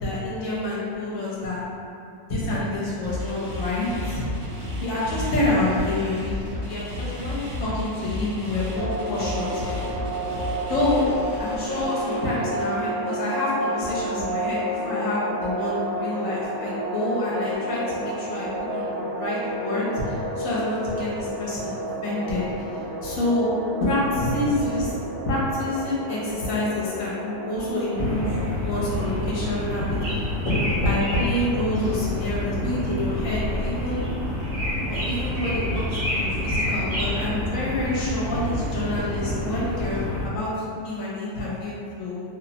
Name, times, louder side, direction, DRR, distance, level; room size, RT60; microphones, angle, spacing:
voice 1, 0.0-1.6 2.3-4.4 4.8-9.8 10.7-11.0 11.4-22.5 23.0-23.5 23.8-24.9 25.2-28.3 28.6-30.2 30.4-34.0 34.9-40.5 40.8-42.2, left 1 dB, 65° left, -7 dB, 1.1 m, -27 dB
sound 1, 3.0-12.2, left 1 dB, 90° right, 0.4 m, -33 dB
sound 2, 8.8-28.4, right 1 dB, 35° right, 0.8 m, -31 dB
sound 3, 27.9-40.3, left 1 dB, 70° right, 1.0 m, -28 dB
3.0 x 2.0 x 2.8 m, 2.5 s
omnidirectional pair, 1.6 m